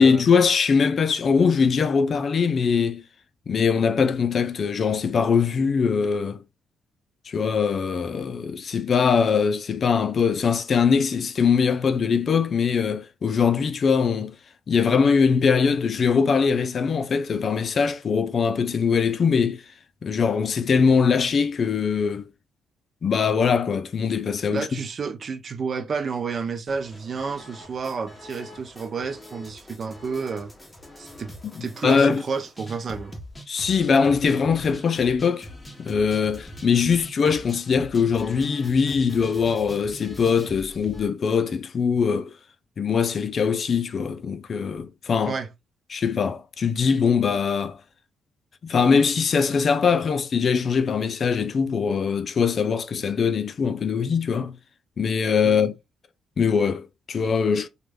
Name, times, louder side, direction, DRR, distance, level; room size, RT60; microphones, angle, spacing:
voice 1, 0.0-3.0 3.5-6.4 7.3-14.3 14.7-19.6 20.0-22.3 23.0-24.8 31.8-32.2 33.5-35.5 35.8-42.3 42.8-45.3 45.9-47.8 48.6-54.6 55.0-55.7 56.4-57.7, left 6 dB, 50° left, 0.4 m, -22 dB
voice 2, 24.5-30.5 31.0-31.3 31.6-33.1 45.3-45.5 55.4-55.6, right 5 dB, 45° right, 0.5 m, -30 dB
sound 1, 26.7-41.1, equal, 15° left, 0.8 m, -43 dB
3.0 x 2.2 x 3.4 m
cardioid pair, 90°, 0 cm